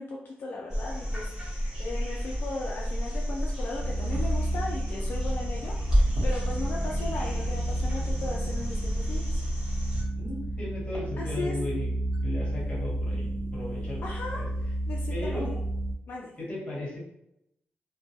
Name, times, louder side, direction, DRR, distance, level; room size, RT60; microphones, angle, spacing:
voice 1, 0.0-9.4 11.2-11.6 14.0-14.4 14.9-15.6 16.1-16.3, left 3 dB, 55° left, -3 dB, 0.3 m, -37 dB
sound 1, 0.7-10.0 12.1-12.2, equal, 20° right, 1.0 m, -30 dB
sound 2, 3.8-16.0, right 1 dB, 65° right, 0.6 m, -32 dB
voice 2, 10.1-11.9 12.2-14.5 15.1-15.5 16.4-17.0, left 2 dB, 30° left, -4 dB, 1.0 m, -36 dB
2.2 x 2.2 x 2.7 m, 0.82 s
wide cardioid pair, 130°, 4 cm